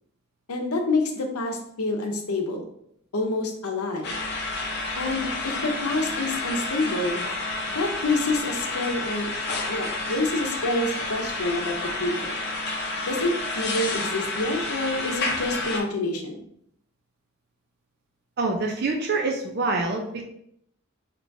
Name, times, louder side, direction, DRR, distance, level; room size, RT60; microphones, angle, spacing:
voice 1, 0.5-2.6 3.1-4.2 5.0-7.2 7.7-9.3 9.7-12.3 13.0-16.4, left 2 dB, 90° left, 3 dB, 0.7 m, -27 dB
sound 1, 4.0-15.8, left 2 dB, 50° left, 0.6 m, -30 dB
voice 2, 18.4-20.2, right 3 dB, 45° right, 1 dB, 0.4 m, -26 dB
4.5 x 2.9 x 2.6 m, 0.71 s
head